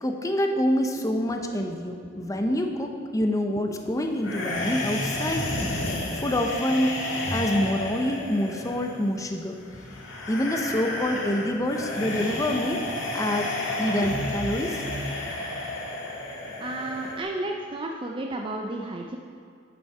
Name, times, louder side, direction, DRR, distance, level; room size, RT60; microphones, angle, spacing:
voice 1, 0.0-5.5 6.1-7.0 7.3-9.6 10.3-12.9 13.1-13.5 13.8-14.8, left 1 dB, 15° left, 4 dB, 0.7 m, -26 dB
sound 1, 4.2-17.2, left 1 dB, 75° left, 1.7 m, -31 dB
voice 2, 16.6-19.2, right 2 dB, 25° right, 1 dB, 0.5 m, -32 dB
9.8 x 7.1 x 4.8 m, 2.4 s
head